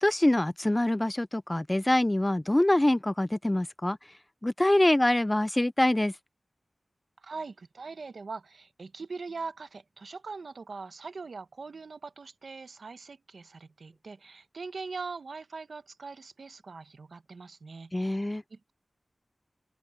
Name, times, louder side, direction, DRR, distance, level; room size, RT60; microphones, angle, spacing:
voice 1, 0.0-4.0 4.4-6.1 17.9-18.4, left 1 dB, 20° left, 0.4 m, -25 dB
voice 2, 7.2-18.2 18.5-18.7, right 4 dB, 85° right, 1.0 m, -42 dB
wide cardioid pair, 85°, 0 cm